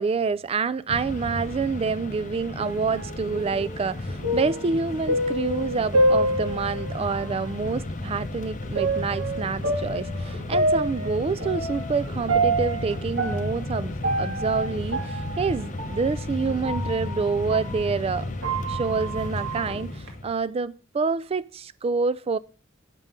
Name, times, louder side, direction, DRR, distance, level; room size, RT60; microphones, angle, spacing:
voice 1, 0.0-18.3 18.7-22.4, right 4 dB, 30° right, 0.3 m, -27 dB
Mechanisms, 0.9-20.3, left 2 dB, 40° left, 0.7 m, -33 dB
sound 1, 2.6-7.2 7.7-7.8 8.7-17.8 18.2-20.1, right 1 dB, 65° right, 2.0 m, -27 dB
6.8 x 5.4 x 7.2 m
head